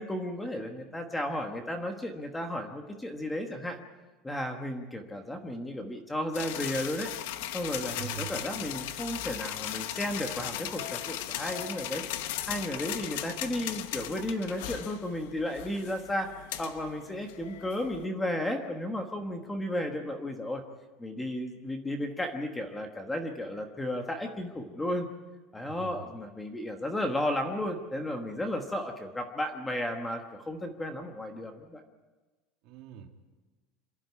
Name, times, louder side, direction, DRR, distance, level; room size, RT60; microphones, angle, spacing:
voice 1, 0.0-3.8 4.2-7.1 7.5-20.6 21.0-25.1 25.5-31.8, left 1 dB, 5° left, 4 dB, 1.3 m, -34 dB
sound 1, 6.3-18.1, left 12 dB, 70° left, 1.0 m, -37 dB
voice 2, 8.0-8.4 25.6-26.1 32.6-33.1, right 13 dB, 45° right, 4 dB, 2.1 m, -43 dB
27.5 x 11.5 x 9.5 m, 1.2 s
cardioid pair, 180°, 0 cm